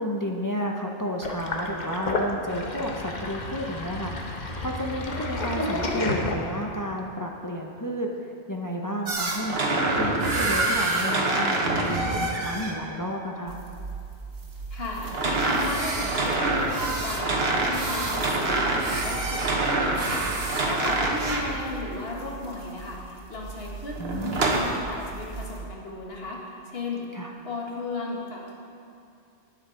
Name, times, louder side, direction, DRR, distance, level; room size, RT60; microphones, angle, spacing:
voice 1, 0.0-13.6 24.0-24.5 27.1-27.3, equal, 20° left, 0 dB, 0.6 m, -32 dB
Sink (filling or washing), 1.2-6.8, left 2 dB, 40° left, 1.1 m, -31 dB
sound 1, 9.1-12.7 15.0-21.5 24.0-24.6, right 2 dB, 60° right, 1.4 m, -26 dB
sound 2, 13.5-25.7, right 4 dB, 80° right, 1.9 m, -40 dB
voice 2, 14.7-27.1 27.4-28.5, left 2 dB, 55° left, -2 dB, 1.9 m, -35 dB
11.5 x 9.5 x 5.1 m, 2.5 s
omnidirectional pair, 1.2 m